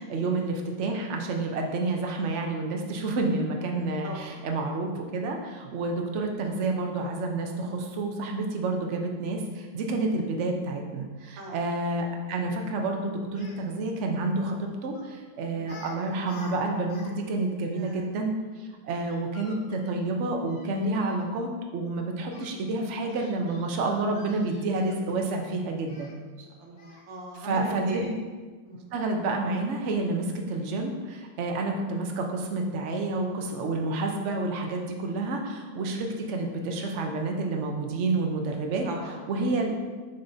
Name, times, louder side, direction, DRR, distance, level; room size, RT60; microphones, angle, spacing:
voice 1, 0.0-18.3 18.6-26.1 27.4-28.1 28.9-38.9 39.3-39.8, right 2 dB, 55° right, 2 dB, 0.8 m, -29 dB
voice 2, 4.0-4.4 11.4-11.6 15.6-15.8 17.7-18.1 18.7-18.9 26.4-28.1 28.6-28.9 38.8-39.2, right 2 dB, 90° right, -1 dB, 1.6 m, -39 dB
Speech, 13.4-13.6 14.9-15.2 15.6-16.0 16.2-17.1 17.4-17.5 19.1-21.2 22.3-22.5 23.1-25.2 25.9-26.1 26.8-27.1, left 3 dB, 60° left, 0.6 m, -50 dB
6.6 x 5.6 x 2.7 m, 1.4 s
omnidirectional pair, 2.0 m